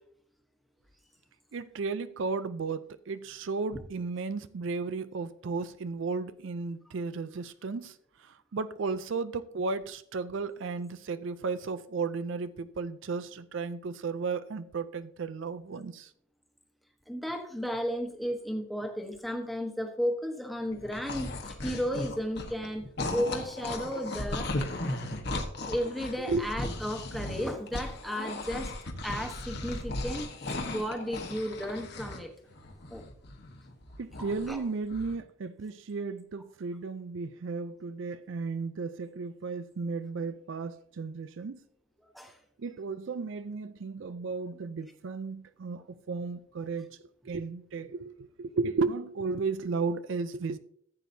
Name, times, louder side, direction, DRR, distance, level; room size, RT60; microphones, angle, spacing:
voice 1, 1.5-16.1 26.3-26.5 34.0-41.6 42.6-47.0 47.2-50.6, right 4 dB, 65° right, 0.4 m, -34 dB
voice 2, 17.1-24.5 25.7-28.7 29.0-30.3 30.7-32.3 32.9-33.0 34.5-34.6 42.0-42.3, equal, ahead, 1.1 m, -34 dB
sound 1, 20.7-22.7 23.0-32.2 32.5-34.6 34.9-35.2, left 2 dB, 50° left, 1.3 m, -37 dB
14.5 x 8.2 x 2.7 m
head